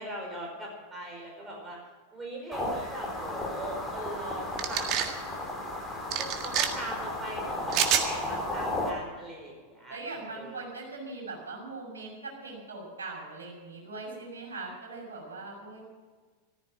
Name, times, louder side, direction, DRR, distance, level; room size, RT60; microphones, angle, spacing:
voice 1, 0.0-1.8 2.1-5.2 6.2-10.6, right 1 dB, 15° right, -1 dB, 4.9 m, -40 dB
sound 1, 2.5-8.9, left 1 dB, 10° left, 3.9 m, -34 dB
sound 2, 4.6-5.1 6.1-6.7 7.7-8.1, right 9 dB, 40° right, 1.7 m, -27 dB
voice 2, 9.9-15.8, right 3 dB, 70° right, -1 dB, 6.6 m, -41 dB
14.5 x 14.5 x 6.2 m, 1.4 s
figure-of-eight pair, 90°, 0 cm